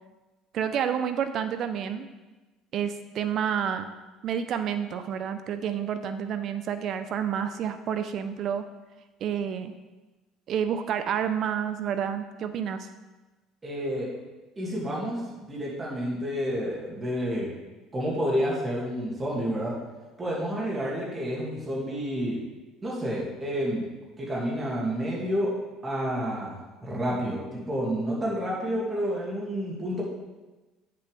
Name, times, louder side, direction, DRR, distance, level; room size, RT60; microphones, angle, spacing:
voice 1, 0.5-2.1 2.7-3.9 4.2-8.7 9.2-9.7 10.5-12.9, right 8 dB, 55° right, 9 dB, 0.5 m, -29 dB
voice 2, 13.6-14.1 14.6-17.5 17.9-19.8 20.2-22.4 22.8-23.9 24.2-25.5 25.8-30.0, equal, 20° right, -4 dB, 2.4 m, -29 dB
9.5 x 6.8 x 3.5 m, 1.2 s
cardioid pair, 110°, 0 cm